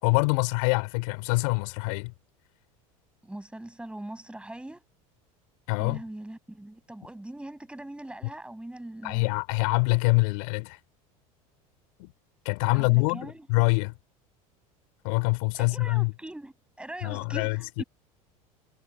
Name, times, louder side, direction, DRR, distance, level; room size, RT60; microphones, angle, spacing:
voice 1, 0.0-2.1 5.7-6.0 9.0-10.8 12.0-12.1 12.5-13.9 15.0-16.1 17.0-17.8, left 30 dB, 70° left, 3.6 m, -25 dB
voice 2, 3.2-4.8 5.8-9.3 12.7-13.5 15.6-17.8, right 1 dB, 5° right, 6.5 m, -41 dB
hypercardioid pair, 90°, 18 cm